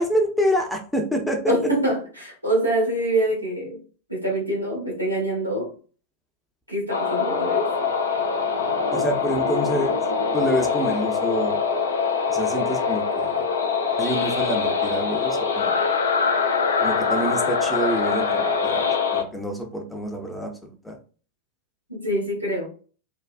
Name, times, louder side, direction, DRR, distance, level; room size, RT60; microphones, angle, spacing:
voice 1, 0.0-1.5 8.9-10.0 10.3-11.6 12.3-13.4 14.0-15.8 16.8-21.0, equal, 5° left, 3 dB, 0.7 m, -27 dB
voice 2, 1.5-3.8 4.1-5.7 6.7-7.7 21.9-22.7, right 1 dB, 90° right, -3 dB, 1.2 m, -25 dB
sound 1, 6.9-19.2, left 5 dB, 70° left, 0.5 m, -23 dB
3.4 x 2.4 x 2.4 m, 0.38 s
figure-of-eight pair, 90°, 0 cm